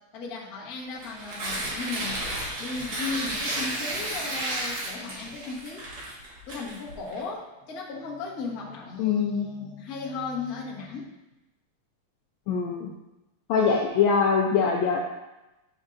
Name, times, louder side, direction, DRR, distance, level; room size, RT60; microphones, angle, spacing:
voice 1, 0.1-2.3 2.6-6.0 6.5-11.1, left 4 dB, 65° left, -4 dB, 0.9 m, -36 dB
Tearing, 0.9-7.2, right 1 dB, 55° right, 2.5 m, -32 dB
voice 2, 9.0-9.5 12.5-12.9 13.5-15.0, left 6 dB, 80° left, -1 dB, 1.6 m, -23 dB
8.8 x 5.3 x 2.5 m, 0.98 s
omnidirectional pair, 3.8 m